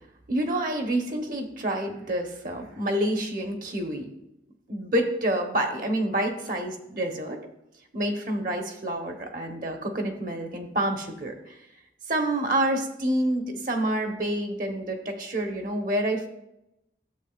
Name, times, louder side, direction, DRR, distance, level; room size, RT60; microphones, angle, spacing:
voice 1, 0.3-4.1 4.7-7.4 7.9-11.6 12.1-16.3, right 1 dB, 50° right, 3 dB, 1.1 m, -28 dB
12.0 x 7.5 x 2.4 m, 0.83 s
head